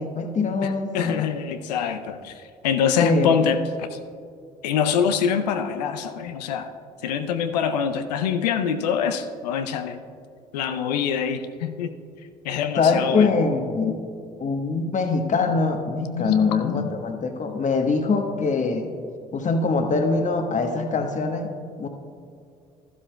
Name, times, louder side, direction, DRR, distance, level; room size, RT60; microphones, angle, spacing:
voice 1, 0.0-1.3 3.0-3.3 12.8-14.0 14.4-18.9 19.3-21.5 21.8-21.9, left 4 dB, 35° left, 5 dB, 1.1 m, -23 dB
voice 2, 0.6-4.0 4.6-6.7 7.0-10.0 10.5-12.0 12.4-13.4 16.1-16.9, left 7 dB, 80° left, 8 dB, 0.5 m, -25 dB
13.0 x 12.0 x 2.2 m, 2.3 s
hypercardioid pair, 55°, 21 cm